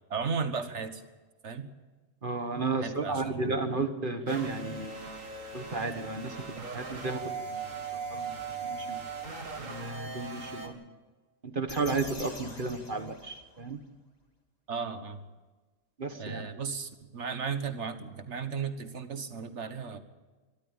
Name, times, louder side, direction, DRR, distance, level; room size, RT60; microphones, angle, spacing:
voice 1, 0.1-1.0 1.4-1.7 2.7-3.5 14.7-15.2 16.2-20.0, right 5 dB, 60° right, 10 dB, 1.7 m, -35 dB
voice 2, 2.2-4.9 5.5-7.2 7.5-7.6 8.1-8.3 8.7-9.0 9.6-10.8 11.5-13.8 16.0-16.4, right 3 dB, 40° right, 8 dB, 1.5 m, -33 dB
sound 1, 4.3-10.7, right 5 dB, 75° right, 2.5 m, -39 dB
sound 2, 11.7-13.8, left 2 dB, 30° left, 2.4 m, -46 dB
23.5 x 13.5 x 8.9 m, 1.3 s
omnidirectional pair, 1.4 m